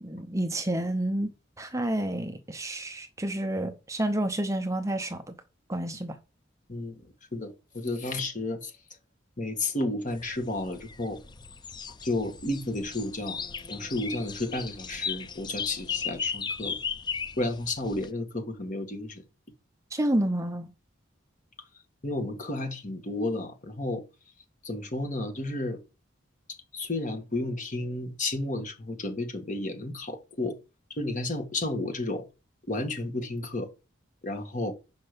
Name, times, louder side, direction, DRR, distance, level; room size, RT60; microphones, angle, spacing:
voice 1, 0.0-5.3 5.7-6.2 19.9-20.7, right 1 dB, 15° right, 0.7 m, -29 dB
voice 2, 6.7-8.7 9.4-11.2 12.0-13.4 13.7-16.8 17.4-19.2 22.0-24.0 24.6-25.8 26.7-30.6 30.9-32.3 32.7-33.7 34.2-34.7, left 2 dB, 40° left, 1.9 m, -32 dB
sound 1, 10.1-18.1, left 6 dB, 25° left, 0.4 m, -36 dB
6.6 x 5.3 x 6.8 m
head